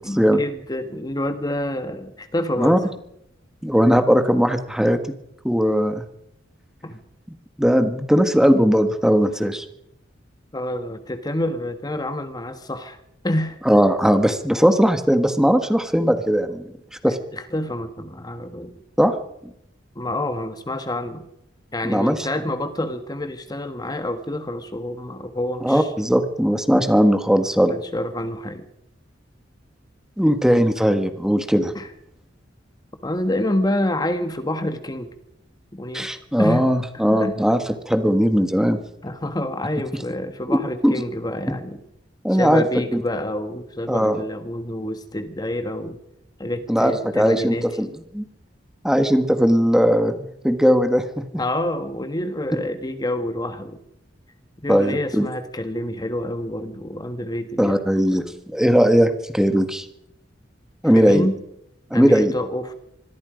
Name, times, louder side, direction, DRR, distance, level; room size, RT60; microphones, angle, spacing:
voice 1, 0.0-2.8 6.8-7.0 10.5-13.0 13.2-13.6 17.3-18.8 19.9-21.3 21.7-25.9 27.7-28.7 31.7-31.9 33.0-35.1 35.7-36.1 36.4-36.7 36.9-37.5 39.0-41.8 42.3-46.0 46.4-47.7 51.4-53.8 54.6-57.9 60.9-61.4 61.9-62.7, left 1 dB, 20° left, 9 dB, 1.4 m, -27 dB
voice 2, 3.6-5.0 5.4-6.0 7.6-9.6 13.6-16.7 17.0-17.2 19.0-19.1 21.8-22.2 25.6-27.7 30.2-31.7 35.9-38.8 40.5-40.9 42.2-42.6 42.9-43.0 43.9-44.2 46.7-47.9 48.1-48.2 48.8-51.2 54.7-55.3 57.6-59.8 60.8-61.3 61.9-62.3, equal, 5° right, 8 dB, 1.6 m, -18 dB
25.5 x 21.0 x 5.2 m, 0.80 s
head